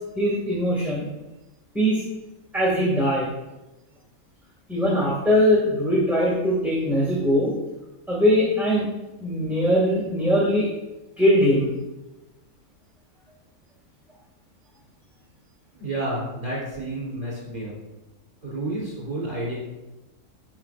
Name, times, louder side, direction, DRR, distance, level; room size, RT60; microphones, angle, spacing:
voice 1, 0.2-1.0 1.7-2.0 2.5-3.3 4.7-7.5 8.1-8.9 9.2-10.7 11.2-11.7, equal, ahead, -6 dB, 2.0 m, -21 dB
voice 2, 15.7-17.7 18.4-19.5, right 1 dB, 35° right, -7 dB, 3.5 m, -30 dB
17.0 x 5.7 x 2.5 m, 1.0 s
omnidirectional pair, 1.6 m